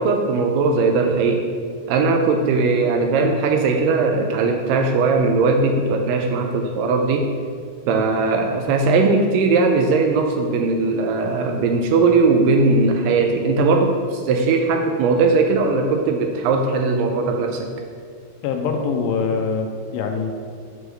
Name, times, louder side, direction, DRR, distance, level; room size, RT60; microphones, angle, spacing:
voice 1, 0.0-1.4 1.9-7.3 7.9-17.7, right 3 dB, 80° right, 4 dB, 2.2 m, -19 dB
voice 2, 18.4-20.4, left 5 dB, 85° left, 4 dB, 2.4 m, -23 dB
6.9 x 4.8 x 6.3 m, 2.1 s
omnidirectional pair, 4.2 m